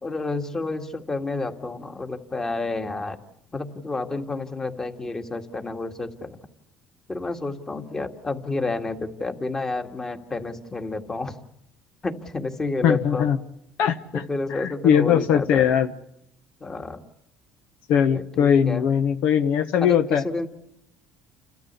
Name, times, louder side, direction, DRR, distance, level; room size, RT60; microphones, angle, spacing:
voice 1, 0.0-3.2 3.5-6.4 7.1-11.4 12.0-13.3 14.1-15.7 16.6-17.0 18.1-18.9 19.8-20.5, left 3 dB, 20° left, 6 dB, 2.1 m, -30 dB
voice 2, 12.8-13.4 13.8-14.2 14.5-15.9 17.9-20.2, left 8 dB, 75° left, 9 dB, 1.2 m, -20 dB
30.0 x 13.0 x 8.3 m, 0.84 s
cardioid pair, 115°, 3 cm